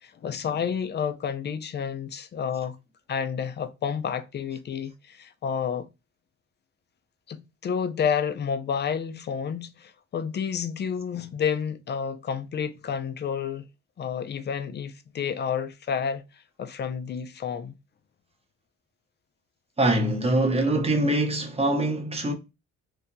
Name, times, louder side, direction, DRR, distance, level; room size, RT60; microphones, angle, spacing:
voice 1, 0.0-2.8 3.1-5.9 7.3-13.7 14.0-16.2 16.6-17.8, left 7 dB, 35° left, 0.4 m, -30 dB
voice 2, 19.8-22.3, right 1 dB, 20° right, 0.7 m, -23 dB
2.8 x 2.2 x 2.6 m
cardioid pair, 90°, 30 cm